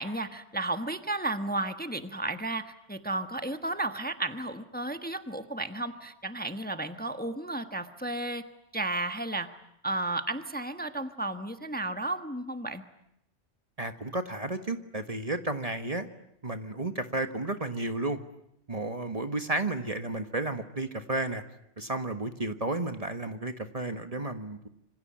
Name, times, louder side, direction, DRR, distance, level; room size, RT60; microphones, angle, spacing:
voice 1, 0.0-8.4 8.7-9.5 9.8-12.8, right 2 dB, 10° left, 8 dB, 1.3 m, -33 dB
voice 2, 13.8-16.1 16.4-18.2 18.7-21.4 21.8-24.7, right 2 dB, 30° right, 8 dB, 1.4 m, -32 dB
26.5 x 25.5 x 8.7 m, 0.79 s
omnidirectional pair, 1.2 m